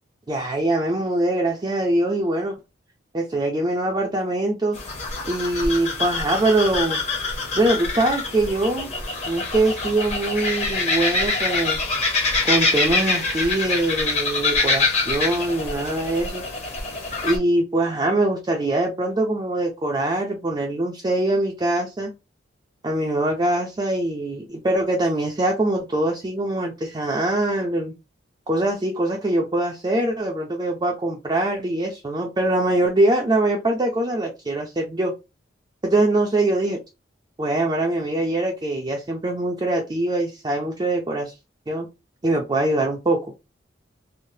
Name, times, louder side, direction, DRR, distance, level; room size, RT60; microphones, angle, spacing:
voice 1, 0.3-2.6 3.1-4.8 5.3-7.0 7.5-8.9 9.3-11.8 12.4-16.4 17.2-22.1 22.8-27.9 28.5-35.1 35.8-36.8 37.4-41.3 41.7-41.9 42.2-43.3, right 2 dB, 20° right, 0.4 m, -23 dB
sound 1, 4.7-17.4, left 3 dB, 35° left, 0.8 m, -25 dB
3.2 x 2.1 x 2.6 m
head